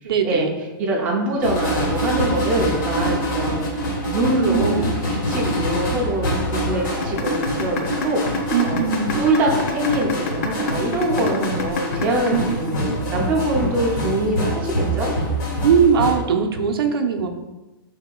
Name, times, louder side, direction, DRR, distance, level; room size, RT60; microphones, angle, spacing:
voice 1, 0.0-0.5 4.4-4.9 8.5-9.1 12.3-12.4 12.9-13.1 15.6-17.3, right 6 dB, 80° right, 4 dB, 0.7 m, -20 dB
voice 2, 0.8-4.8 5.1-15.1, right 1 dB, 10° right, -3 dB, 0.5 m, -24 dB
sound 1, 1.4-16.1, equal, 55° left, 1.5 m, -25 dB
sound 2, 7.0-13.0, left 4 dB, 35° left, 0.5 m, -27 dB
6.7 x 3.5 x 2.2 m, 1.1 s
hypercardioid pair, 180°, 12 cm